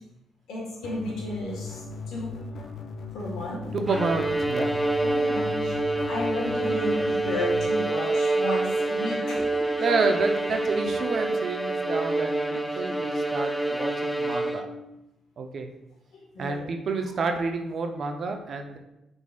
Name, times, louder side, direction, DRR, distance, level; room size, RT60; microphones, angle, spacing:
voice 1, 0.5-2.4 3.1-3.6 5.0-9.8 16.1-16.7, left 1 dB, 80° left, -3 dB, 1.4 m, -33 dB
sound 1, 0.8-7.7, left 4 dB, 55° left, 0.6 m, -38 dB
voice 2, 3.7-4.8 9.8-14.7 15.4-15.7 16.4-18.8, right 4 dB, 55° right, 5 dB, 0.5 m, -29 dB
Bowed string instrument, 3.9-14.9, right 2 dB, ahead, 0.4 m, -27 dB
4.8 x 3.9 x 2.4 m, 0.90 s
cardioid pair, 90°, 0 cm